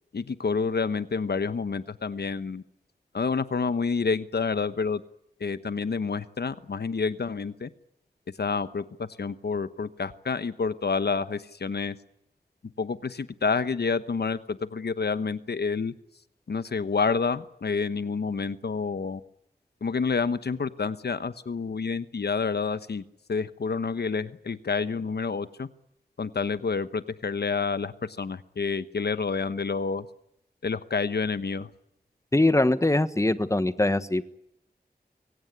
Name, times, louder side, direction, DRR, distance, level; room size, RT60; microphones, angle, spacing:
voice 1, 0.1-2.6 3.1-5.0 5.4-7.7 8.4-12.0 12.8-15.9 16.5-19.2 19.8-23.0 23.3-25.7 26.2-30.1 30.6-31.7, left 5 dB, 85° left, 13 dB, 1.1 m, -28 dB
voice 2, 32.3-34.2, left 2 dB, 20° left, 13 dB, 1.3 m, -22 dB
23.5 x 17.0 x 9.6 m, 0.78 s
wide cardioid pair, 70°, 17 cm